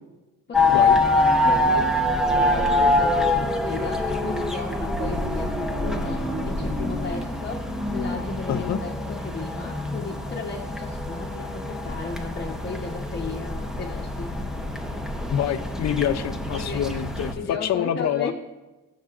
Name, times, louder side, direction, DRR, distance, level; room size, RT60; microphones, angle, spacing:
voice 1, 0.5-14.4 16.5-16.8 17.4-18.3, left 4 dB, 30° left, -2 dB, 1.1 m, -35 dB
sound 1, 0.5-17.3, left 2 dB, ahead, 0.9 m, -25 dB
voice 2, 8.5-8.8 15.3-18.3, left 10 dB, 55° left, 11 dB, 0.7 m, -26 dB
20.5 x 7.1 x 2.5 m, 1.1 s
cardioid pair, 130°, 33 cm